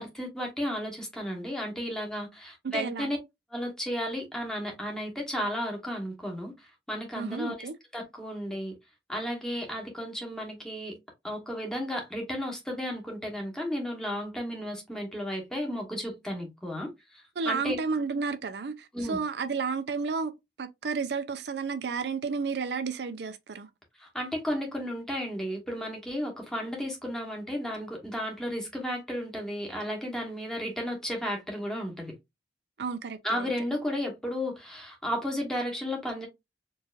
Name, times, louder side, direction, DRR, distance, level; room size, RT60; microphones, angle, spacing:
voice 1, 0.0-3.2 3.5-6.5 6.9-7.5 7.9-8.7 9.1-10.9 11.2-17.8 18.9-19.2 24.0-32.1 33.2-36.3, equal, 5° left, 1.3 m, -33 dB
voice 2, 2.6-3.1 7.1-7.7 17.4-20.3 20.6-23.7 32.8-33.5, right 5 dB, 65° right, 0.5 m, -32 dB
4.5 x 2.8 x 2.5 m
head